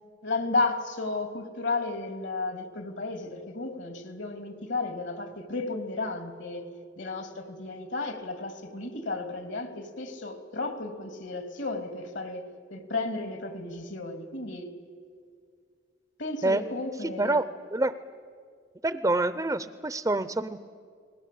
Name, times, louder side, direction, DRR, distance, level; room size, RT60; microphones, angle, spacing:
voice 1, 0.2-6.7 7.0-12.4 12.7-14.7 16.2-17.4, left 3 dB, 70° left, 2.7 m, -33 dB
voice 2, 17.0-17.4 17.7-17.9 18.8-20.7, right 2 dB, 15° right, 0.6 m, -27 dB
29.5 x 20.5 x 8.5 m
head